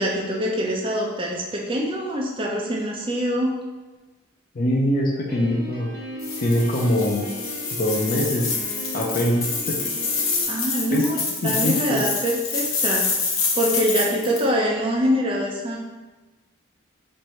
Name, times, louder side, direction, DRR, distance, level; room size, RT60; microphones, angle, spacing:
voice 1, 0.0-3.5 10.5-13.1 13.5-15.8, equal, 25° right, -1 dB, 0.5 m, -24 dB
voice 2, 4.5-5.9 6.4-7.3 7.8-8.6 8.9-9.8 10.9-11.1 11.4-12.0, left 1 dB, 40° left, -1 dB, 0.5 m, -23 dB
Piano, 5.3-10.4, equal, 50° right, 1.1 m, -36 dB
sound 1, 6.2-14.4, left 4 dB, 80° left, 0.7 m, -27 dB
3.2 x 2.6 x 4.2 m, 1.2 s
head